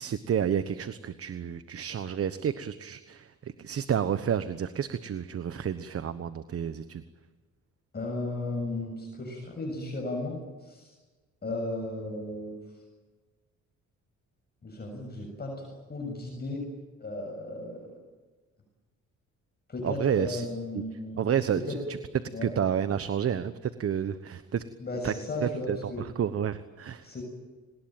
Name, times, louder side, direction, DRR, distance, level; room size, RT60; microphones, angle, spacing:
voice 1, 0.0-7.0 19.8-20.4 20.7-20.8 21.2-21.8 22.4-24.6 25.0-25.1 25.4-27.1, right 8 dB, 50° right, 12 dB, 1.2 m, -30 dB
voice 2, 7.9-10.9 11.4-12.6 14.6-16.6 17.0-17.9 19.7-21.2 21.5-21.8 22.3-22.5 24.8-26.1 27.0-27.2, left 2 dB, 35° left, 0 dB, 7.1 m, -35 dB
29.5 x 20.0 x 9.1 m, 1.3 s
cardioid pair, 90°, 30 cm